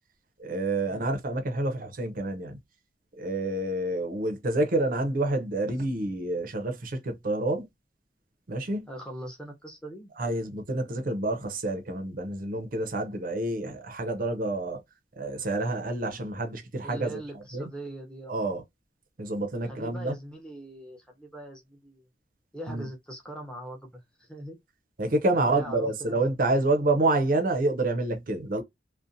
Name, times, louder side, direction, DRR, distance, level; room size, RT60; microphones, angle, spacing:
voice 1, 0.4-2.6 3.2-7.7 8.5-8.8 10.2-14.8 15.2-17.2 17.5-17.7 18.3-18.6 19.2-20.2 22.7-22.9 25.0-28.6, right 2 dB, 50° right, 0.5 m, -28 dB
voice 2, 8.9-10.1 16.8-18.5 19.6-22.0 22.5-24.6 25.3-26.2, right 1 dB, 5° left, 0.6 m, -41 dB
2.6 x 2.1 x 2.5 m
head